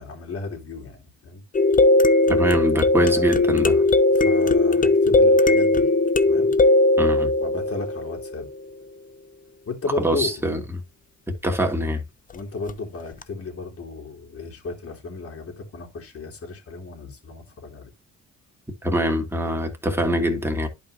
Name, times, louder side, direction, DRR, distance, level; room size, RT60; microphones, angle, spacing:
voice 1, 0.0-1.4 3.0-3.8 4.1-5.9 6.3-6.5 7.4-8.5 9.7-10.5 12.3-17.9, left 3 dB, 50° left, 3.4 m, -34 dB
sound 1, 1.5-8.4 12.7-12.8 13.2-13.3, left 2 dB, 25° left, 0.7 m, -18 dB
voice 2, 2.3-3.8 7.0-7.3 10.0-10.8 11.4-12.0 18.8-20.7, equal, 10° right, 2.5 m, -23 dB
11.0 x 5.3 x 2.8 m
cardioid pair, 90°, 30 cm